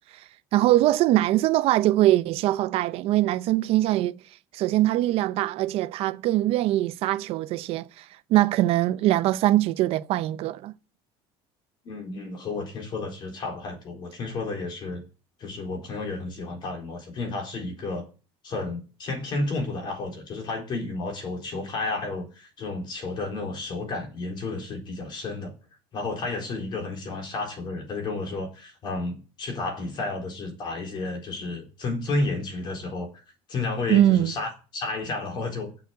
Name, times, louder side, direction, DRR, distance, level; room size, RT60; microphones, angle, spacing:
voice 1, 0.5-4.2 4.5-8.0 8.3-10.7 33.9-34.3, right 14 dB, 55° right, 0.5 m, -22 dB
voice 2, 11.8-15.0 15.4-18.1 18.4-25.5 25.9-33.1 33.5-35.7, left 3 dB, 40° left, 3.9 m, -32 dB
7.7 x 7.0 x 8.2 m
cardioid pair, 150°, 12 cm